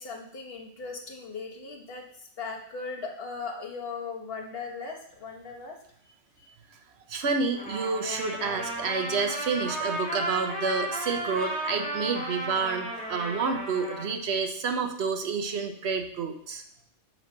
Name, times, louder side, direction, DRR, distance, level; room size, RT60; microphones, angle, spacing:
voice 1, 0.0-5.8 6.4-6.5, left 4 dB, 45° left, 1 dB, 1.4 m, -38 dB
voice 2, 7.1-16.6, right 5 dB, 55° right, 5 dB, 1.0 m, -29 dB
Trumpet, 7.5-14.1, right 1 dB, 5° left, 2.1 m, -34 dB
8.8 x 3.3 x 6.5 m, 0.66 s
omnidirectional pair, 1.4 m